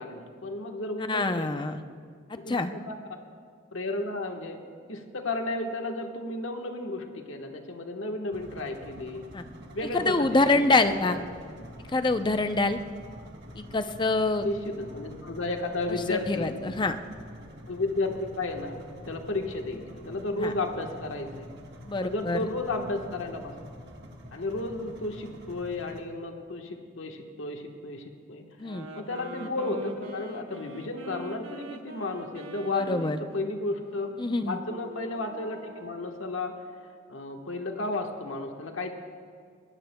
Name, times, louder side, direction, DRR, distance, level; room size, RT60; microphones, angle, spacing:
voice 1, 0.0-1.6 2.4-3.2 3.7-4.6 4.9-9.3 9.7-10.7 11.0-11.2 14.4-16.5 17.7-21.5 22.0-23.6 24.3-34.2 34.5-36.5 37.1-38.9, left 2 dB, 75° left, 3 dB, 1.3 m, -33 dB
voice 2, 1.1-1.8 2.3-2.7 9.3-9.4 9.9-11.2 11.9-12.8 13.6-14.5 16.1-17.0 20.4-20.5 21.9-22.4 28.6-28.9 32.7-33.2 34.2-34.6, left 2 dB, 25° left, 9 dB, 0.5 m, -25 dB
sound 1, 8.3-26.0, equal, 55° right, 1.5 m, -46 dB
sound 2, 28.6-36.2, right 1 dB, 85° right, 1.1 m, -44 dB
21.5 x 18.0 x 2.2 m, 2.1 s
head